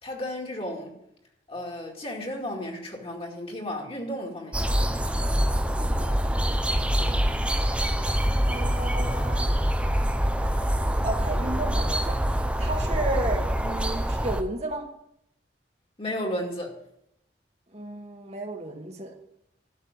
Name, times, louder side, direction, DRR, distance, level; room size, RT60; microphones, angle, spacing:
voice 1, 0.0-0.9 1.5-4.7 16.0-16.8, left 1 dB, 30° left, 1 dB, 2.3 m, -33 dB
sound 1, 4.5-14.4, equal, 5° right, 0.7 m, -25 dB
voice 2, 5.8-6.6 8.5-9.5 10.6-10.7 11.0-12.2 12.6-14.8 17.7-19.1, right 2 dB, 35° right, 3 dB, 1.6 m, -33 dB
12.0 x 6.5 x 9.1 m, 0.78 s
head